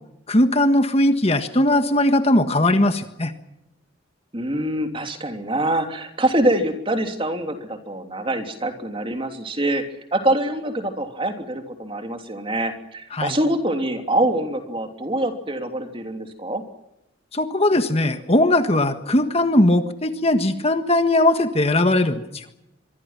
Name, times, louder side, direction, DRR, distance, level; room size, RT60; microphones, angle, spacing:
voice 1, 0.3-3.3 13.1-13.3 17.3-22.4, left 1 dB, 30° left, 8 dB, 1.5 m, -19 dB
voice 2, 4.3-9.8 10.1-16.6, right 1 dB, 25° right, 5 dB, 3.2 m, -24 dB
26.5 x 23.0 x 6.0 m, 0.85 s
head